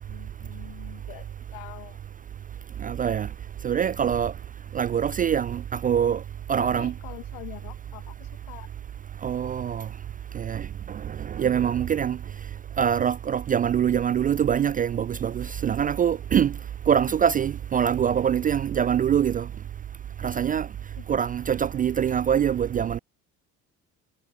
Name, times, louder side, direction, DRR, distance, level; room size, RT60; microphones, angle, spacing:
voice 1, 0.1-2.0 6.6-8.7 21.0-21.1, left 29 dB, 65° left, 1.5 m, -45 dB
voice 2, 2.8-3.3 3.6-4.3 4.7-6.2 6.5-6.9 9.2-9.9 10.3-12.2 12.8-16.5 16.9-19.5 20.2-20.7 21.1-23.0, right 8 dB, 20° right, 0.3 m, -24 dB
figure-of-eight pair, 50°, 43 cm